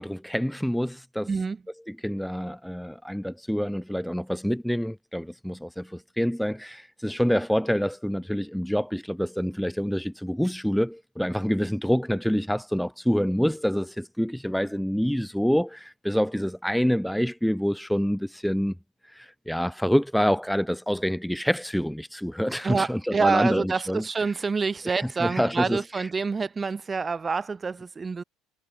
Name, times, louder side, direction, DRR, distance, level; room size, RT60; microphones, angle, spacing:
voice 1, 0.0-1.3 1.9-18.7 19.0-24.0 24.9-26.1, equal, ahead, 5.5 m, -27 dB
voice 2, 22.6-28.2, right 4 dB, 15° right, 3.7 m, -27 dB
cardioid pair, 170°, 0 cm